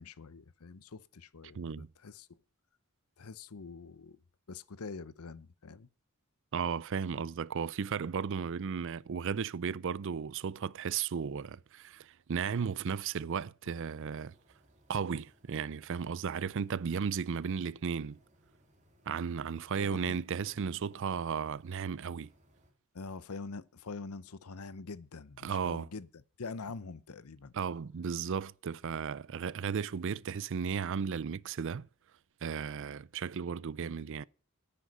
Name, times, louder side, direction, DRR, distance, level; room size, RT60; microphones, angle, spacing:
voice 1, 0.0-2.4 3.2-4.2 4.5-5.9 19.8-20.2 22.9-27.5, left 4 dB, 85° left, 0.8 m, -45 dB
voice 2, 1.5-1.9 6.5-14.3 14.9-18.2 19.1-22.3 25.4-25.9 27.5-31.9 32.4-34.2, right 6 dB, 60° right, 0.4 m, -35 dB
sound 1, 13.8-22.7, right 1 dB, 35° right, 3.4 m, -66 dB
10.0 x 9.7 x 5.4 m
head